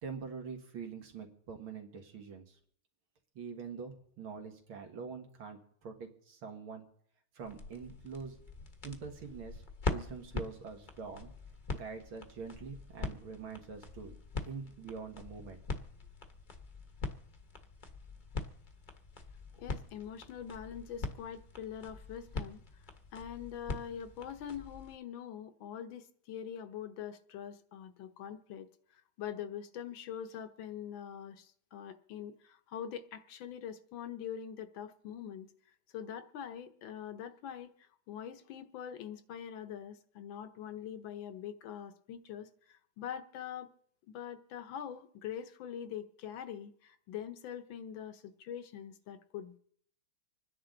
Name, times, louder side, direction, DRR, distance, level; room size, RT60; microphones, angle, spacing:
voice 1, 0.0-2.6 3.4-6.8 7.3-8.4 8.8-9.6 9.9-11.3 11.7-14.2 14.4-15.6, right 5 dB, 80° right, 3 dB, 2.6 m, -44 dB
sound 1, 7.4-25.0, left 3 dB, 35° left, 0.8 m, -43 dB
voice 2, 19.5-22.6 23.1-28.7 28.9-35.5 35.9-37.8 38.1-43.7 44.1-49.6, left 9 dB, 70° left, 9 dB, 1.5 m, -44 dB
26.0 x 10.0 x 3.9 m, 0.63 s
omnidirectional pair, 2.3 m